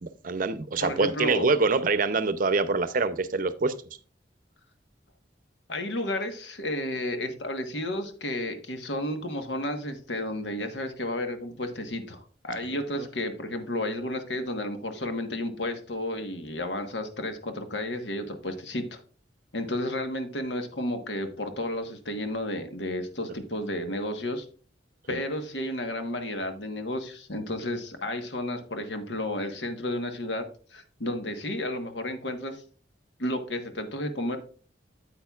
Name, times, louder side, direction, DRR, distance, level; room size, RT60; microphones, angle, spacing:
voice 1, 0.0-3.7 25.1-25.2, right 3 dB, 50° right, 0.6 m, -25 dB
voice 2, 0.8-1.5 5.7-19.0 19.5-24.4 25.1-32.6 33.2-34.4, left 1 dB, 80° left, 1.3 m, -32 dB
8.7 x 8.6 x 2.4 m
head